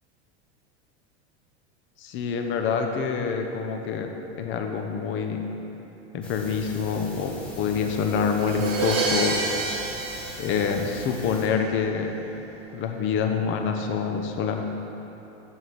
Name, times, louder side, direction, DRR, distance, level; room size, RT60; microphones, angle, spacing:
voice 1, 2.0-4.1 4.4-5.4 6.1-9.4 10.4-12.1 12.7-14.6, left 6 dB, 35° left, 4 dB, 0.7 m, -26 dB
sound 1, 6.2-11.5, left 1 dB, 5° left, 1.0 m, -43 dB
Crash cymbal, 8.4-11.3, right 3 dB, 55° right, 1.3 m, -28 dB
7.1 x 4.2 x 6.2 m, 2.9 s
supercardioid pair, 120°, 34 cm